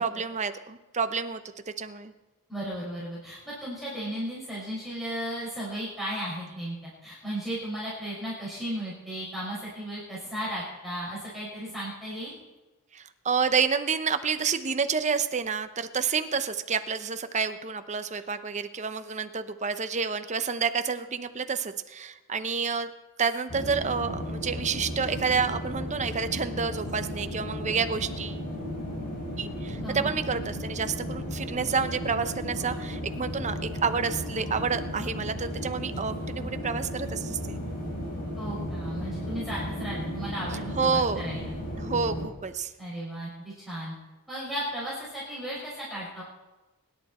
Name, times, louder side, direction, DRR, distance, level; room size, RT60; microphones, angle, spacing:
voice 1, 0.0-1.4 1.8-2.1 12.9-22.9 23.2-28.4 29.4-37.6 40.8-41.2 41.8-42.7, right 5 dB, 35° right, 9 dB, 0.8 m, -29 dB
voice 2, 2.5-12.3 29.8-30.1 38.4-41.4 42.8-43.9 44.3-46.2, equal, ahead, -8 dB, 5.9 m, -35 dB
sound 1, 23.5-42.3, equal, 40° left, 4.8 m, -35 dB
24.5 x 11.0 x 4.3 m, 1.1 s
head